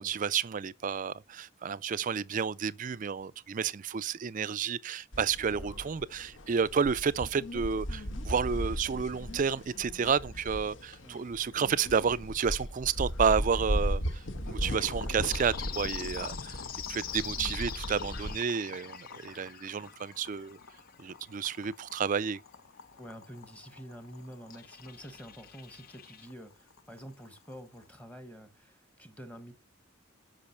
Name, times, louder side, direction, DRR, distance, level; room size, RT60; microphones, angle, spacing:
voice 1, 0.0-16.6 16.9-20.6 21.0-22.4, right 6 dB, 40° right, 0.4 m, -31 dB
sound 1, 5.1-18.4, equal, 65° left, 1.2 m, -37 dB
voice 2, 5.5-5.8 11.0-11.3 15.0-15.2 17.3-17.5 23.0-29.5, equal, 5° left, 1.1 m, -48 dB
Boiling, 14.7-28.0, left 4 dB, 90° left, 1.0 m, -50 dB
sound 2, 15.2-26.3, left 10 dB, 45° left, 0.7 m, -45 dB
8.5 x 5.6 x 5.6 m
head